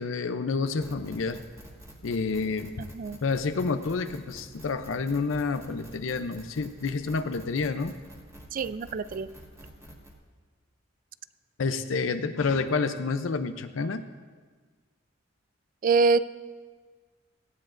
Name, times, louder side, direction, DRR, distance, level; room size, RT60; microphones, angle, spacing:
voice 1, 0.0-1.4 2.0-2.7 3.2-7.9 11.6-14.0, left 4 dB, 80° left, 9 dB, 0.5 m, -29 dB
sound 1, 0.6-10.1, equal, 15° right, 1.6 m, -48 dB
voice 2, 2.8-3.2 8.5-9.3 15.8-16.2, right 4 dB, 45° right, 15 dB, 0.4 m, -25 dB
18.0 x 14.5 x 2.5 m, 1.5 s
head